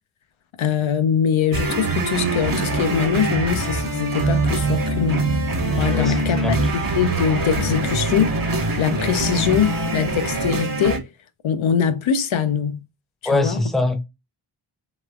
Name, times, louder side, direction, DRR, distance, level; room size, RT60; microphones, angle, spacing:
voice 1, 0.6-5.3 5.7-8.3 8.8-11.1 11.4-12.8 13.2-13.6, left 8 dB, 75° left, 0.5 m, -22 dB
sound 1, 1.5-11.0, right 2 dB, 45° right, 0.9 m, -23 dB
voice 2, 5.9-6.6 13.2-14.0, left 2 dB, ahead, 0.6 m, -23 dB
3.0 x 2.9 x 2.3 m
cardioid pair, 55°, 49 cm